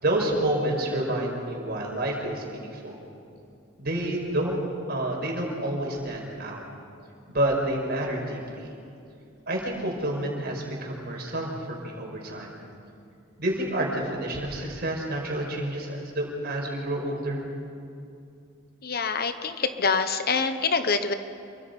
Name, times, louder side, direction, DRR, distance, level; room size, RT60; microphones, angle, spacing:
voice 1, 0.0-3.0 3.8-4.6 4.9-6.6 7.3-8.7 9.5-12.5 13.4-17.4, right 1 dB, 50° right, 0 dB, 5.3 m, -29 dB
voice 2, 18.8-21.1, left 5 dB, 50° left, 9 dB, 1.1 m, -25 dB
28.0 x 24.0 x 5.4 m, 2.5 s
head